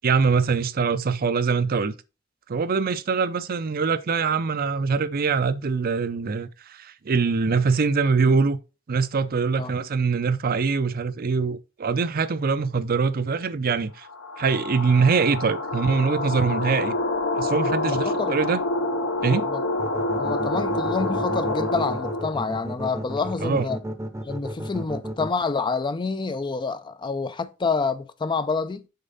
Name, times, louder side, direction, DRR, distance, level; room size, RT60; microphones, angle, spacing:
voice 1, 0.0-1.9 2.5-8.6 8.9-14.1 14.4-16.9 17.4-18.6 19.2-19.5 23.4-23.7, right 5 dB, 50° right, 0.5 m, -23 dB
sound 1, 14.1-22.4, left 2 dB, 65° left, 0.9 m, -27 dB
voice 2, 17.8-18.3 19.3-19.6 20.2-23.8 24.2-28.9, left 4 dB, 25° left, 0.4 m, -27 dB
sound 2, 19.8-25.3, right 1 dB, 15° right, 0.7 m, -32 dB
6.7 x 4.6 x 4.0 m
head